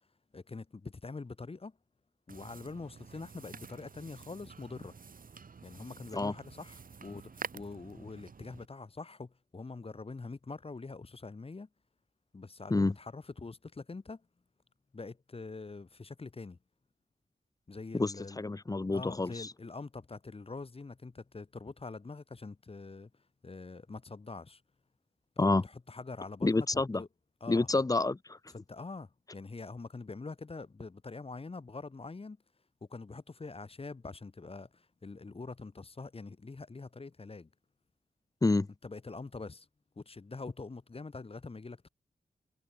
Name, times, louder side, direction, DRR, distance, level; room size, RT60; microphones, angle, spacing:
voice 1, 0.3-1.8 2.3-4.9 5.6-11.7 12.3-14.2 14.9-16.6 17.7-18.4 18.9-23.1 23.4-24.6 25.4-27.1 27.4-27.8 28.5-32.4 32.8-37.5 38.8-39.7 40.0-41.9, left 3 dB, 40° left, 2.2 m, -44 dB
sound 1, 2.3-8.7, right 5 dB, 60° right, 4.8 m, -49 dB
voice 2, 17.9-19.5 25.4-25.6 26.4-27.0 27.5-28.4 38.4-38.7, left 2 dB, 20° left, 0.7 m, -28 dB
cardioid pair, 65°, 16 cm